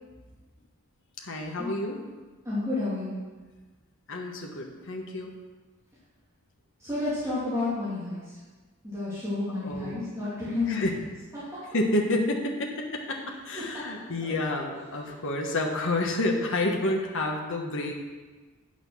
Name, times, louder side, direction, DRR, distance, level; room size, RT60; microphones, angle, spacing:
voice 1, 1.2-2.0 4.1-5.3 9.5-10.0 10.7-11.0 11.7-17.9, left 1 dB, 60° left, 1 dB, 1.3 m, -29 dB
voice 2, 2.4-3.2 6.8-8.2 8.8-10.9 11.3-11.6 13.7-13.8 14.2-14.3, left 2 dB, 15° right, -11 dB, 2.5 m, -30 dB
8.8 x 6.3 x 6.2 m, 1.3 s
head